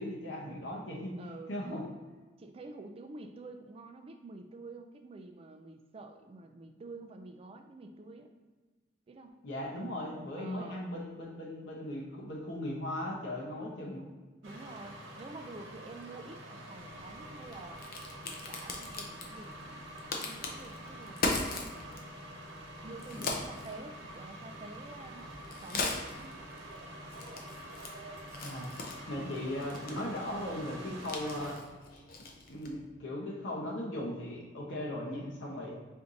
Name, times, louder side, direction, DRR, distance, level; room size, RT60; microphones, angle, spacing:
voice 1, 0.0-1.2 1.5-1.8 9.4-14.1 23.1-23.4 28.4-28.7 29.1-31.6 31.9-32.0 32.5-35.7, left 1 dB, 75° left, -3 dB, 0.8 m, -38 dB
voice 2, 1.2-1.5 2.4-8.3 9.1-9.4 10.4-10.8 14.4-17.8 18.2-19.8 20.2-21.8 22.8-25.3 25.6-26.4 29.2-29.5, right 2 dB, 30° right, 5 dB, 0.3 m, -48 dB
sound 1, 14.4-31.6, right 1 dB, 90° right, 0.8 m, -47 dB
Crack, 16.8-32.9, left 3 dB, 50° left, 0.6 m, -41 dB
4.5 x 2.7 x 3.7 m, 1.3 s
head